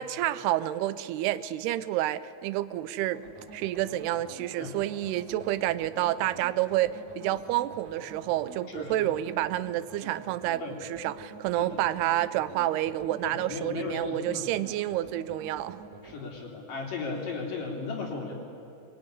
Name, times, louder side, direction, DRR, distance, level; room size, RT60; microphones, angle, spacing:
voice 1, 0.0-3.2 3.5-10.6 10.9-15.8, right 14 dB, 85° right, 15 dB, 2.7 m, -29 dB
sound 1, 3.1-16.3, right 4 dB, 50° right, 3.5 m, -47 dB
voice 2, 8.7-9.1 10.6-10.7 11.5-11.6 13.2-14.4 16.0-18.3, left 4 dB, 55° left, 0 dB, 5.1 m, -36 dB
23.0 x 21.5 x 9.9 m, 2.7 s
omnidirectional pair, 4.6 m